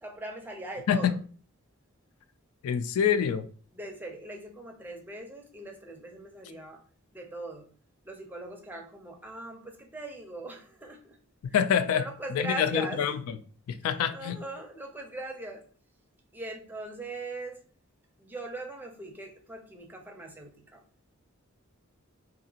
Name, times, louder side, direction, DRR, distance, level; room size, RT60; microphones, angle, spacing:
voice 1, 0.0-1.2 3.2-3.3 3.7-6.8 7.1-7.7 8.0-11.2 11.8-13.1 13.8-15.6 16.3-17.6 18.2-20.8, right 2 dB, 10° right, 0.4 m, -40 dB
voice 2, 2.6-3.5 11.4-12.0 12.3-13.2 13.7-14.4, left 8 dB, 85° left, 0.3 m, -26 dB
2.8 x 2.4 x 2.7 m
head